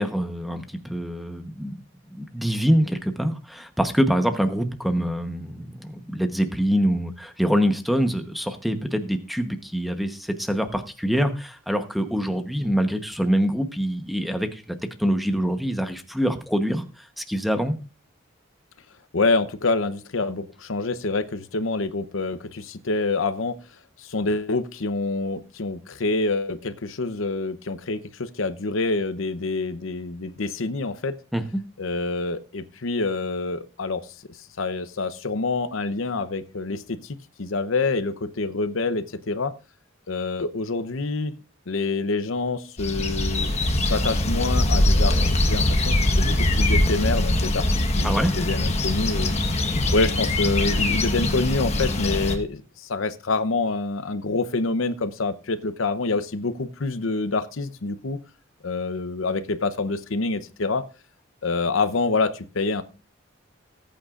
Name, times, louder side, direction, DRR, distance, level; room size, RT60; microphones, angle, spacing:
voice 1, 0.0-1.7 2.1-16.8 17.2-17.8 31.3-31.6 48.0-48.3, equal, ahead, 7 dB, 0.9 m, -25 dB
voice 2, 19.1-23.6 24.0-31.2 31.8-34.0 34.6-39.5 40.1-41.3 41.7-49.3 49.9-58.2 58.6-60.8 61.4-62.8, left 3 dB, 80° left, 12 dB, 0.8 m, -27 dB
sound 1, 42.8-52.4, left 1 dB, 35° left, 1.3 m, -22 dB
19.0 x 8.9 x 2.5 m, 0.35 s
head